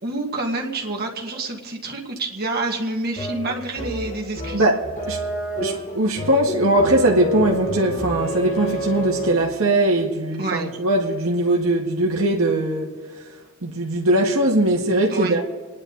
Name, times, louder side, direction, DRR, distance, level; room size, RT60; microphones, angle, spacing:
voice 1, 0.0-4.7 10.4-10.7 15.1-15.4, right 2 dB, 50° right, 1.9 m, -27 dB
sound 1, 3.2-9.6, equal, 40° left, 1.7 m, -29 dB
voice 2, 4.5-5.2 5.6-12.9 13.6-15.4, right 1 dB, 90° right, 1.9 m, -20 dB
28.5 x 10.5 x 4.1 m
head